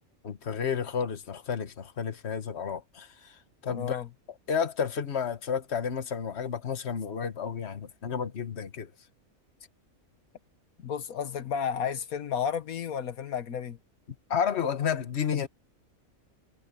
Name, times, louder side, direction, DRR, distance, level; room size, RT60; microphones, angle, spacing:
voice 1, 0.2-3.3 3.6-4.0 4.5-8.9 14.3-15.5, left 7 dB, 50° left, 1.6 m, -31 dB
voice 2, 3.7-4.1 10.8-13.8, left 7 dB, 85° left, 1.5 m, -32 dB
omnidirectional pair, 1.5 m